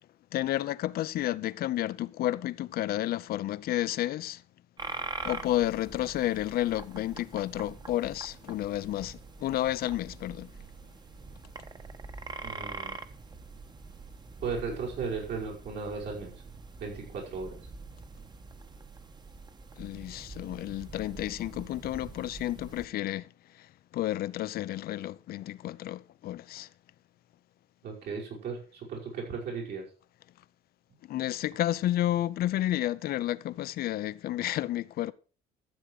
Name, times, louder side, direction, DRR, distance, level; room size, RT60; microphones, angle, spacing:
voice 1, 0.3-4.4 5.2-10.5 19.8-26.7 31.0-35.1, left 14 dB, 65° left, 0.7 m, -31 dB
sound 1, 4.8-22.9, right 3 dB, 25° right, 1.2 m, -44 dB
voice 2, 12.4-13.0 14.4-16.3 16.8-17.5 27.8-29.8, right 5 dB, 75° right, 5.7 m, -36 dB
13.5 x 7.4 x 4.8 m
cardioid pair, 110°, 17 cm